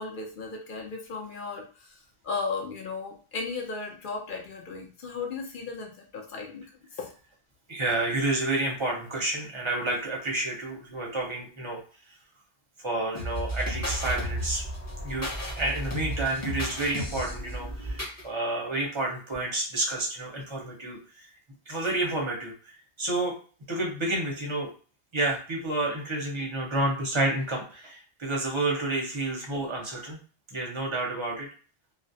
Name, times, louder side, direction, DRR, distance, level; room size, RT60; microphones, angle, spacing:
voice 1, 0.0-6.6 6.9-7.1, left 4 dB, 60° left, 1 dB, 0.6 m, -36 dB
voice 2, 7.7-11.8 12.8-14.6 15.0-15.3 15.6-21.3 21.7-22.7 23.0-23.4 23.7-24.7 25.1-30.2 30.5-31.5, right 2 dB, 30° right, -1 dB, 0.6 m, -30 dB
sound 1, 13.1-18.2, equal, 15° left, 0.6 m, -33 dB
2.3 x 2.0 x 2.6 m, 0.38 s
omnidirectional pair, 1.1 m